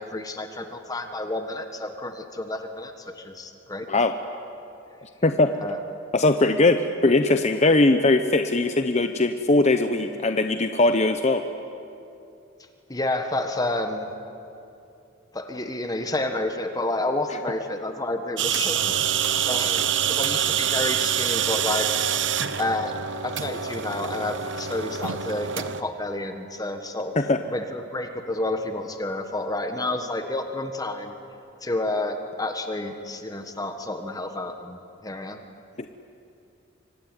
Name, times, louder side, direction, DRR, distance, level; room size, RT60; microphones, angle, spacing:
voice 1, 0.0-3.9 5.6-5.8 12.9-14.1 15.3-22.0 22.6-22.9 23.2-27.1 27.5-31.1 31.6-35.4, left 2 dB, 20° left, 6 dB, 1.4 m, -30 dB
voice 2, 5.2-5.5 6.1-11.4 27.2-27.4 35.8-35.9, left 2 dB, 35° left, 8 dB, 0.8 m, -20 dB
sound 1, 18.4-25.8, right 9 dB, 65° right, 1.0 m, -26 dB
25.0 x 24.5 x 9.7 m, 2.8 s
head